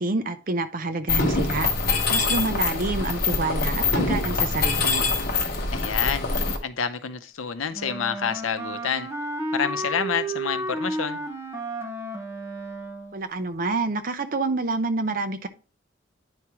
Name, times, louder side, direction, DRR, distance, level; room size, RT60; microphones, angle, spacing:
voice 1, 0.0-1.7 2.1-5.0 13.1-15.5, right 3 dB, 45° right, 9 dB, 0.6 m, -27 dB
Mechanisms, 1.1-6.6, left 4 dB, 50° left, 1.1 m, -24 dB
voice 2, 5.7-6.3 6.6-9.1 9.5-11.2, left 7 dB, 85° left, 9 dB, 0.7 m, -28 dB
Wind instrument woodwind instrument, 7.7-13.3, right 1 dB, 15° right, 0.9 m, -32 dB
9.6 x 4.8 x 3.0 m, 0.35 s
head